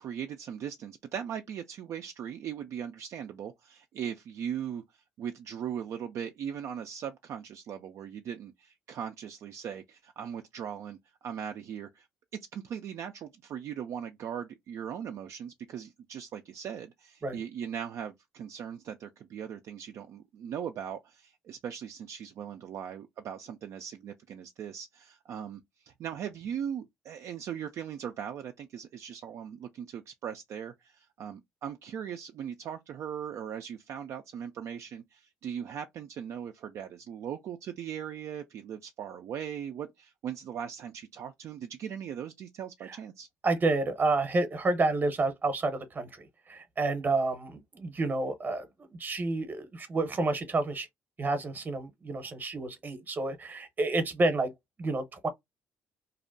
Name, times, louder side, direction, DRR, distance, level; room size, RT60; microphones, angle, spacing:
voice 1, 0.0-4.8 5.2-12.1 12.5-43.3, right 8 dB, 60° right, 0.3 m, -39 dB
voice 2, 43.4-50.9 51.2-54.5 54.8-55.3, right 2 dB, 35° right, 0.8 m, -29 dB
2.6 x 2.1 x 2.5 m
hypercardioid pair, 60°, 6 cm